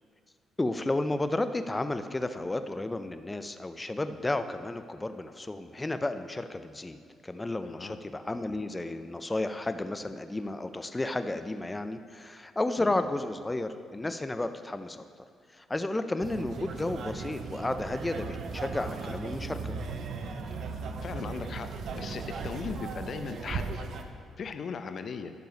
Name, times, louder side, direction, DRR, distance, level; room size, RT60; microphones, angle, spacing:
voice 1, 0.6-7.0 7.2-15.0 15.5-19.7, left 2 dB, 15° left, 10 dB, 0.5 m, -32 dB
voice 2, 7.6-8.0 12.8-12.9 21.0-21.7 21.9-23.8 24.4-25.3, left 5 dB, 50° left, 9 dB, 0.7 m, -38 dB
sound 1, 16.2-24.0, right 4 dB, 60° right, 0.8 m, -37 dB
10.5 x 6.8 x 5.4 m, 2.2 s
cardioid pair, 90°, 0 cm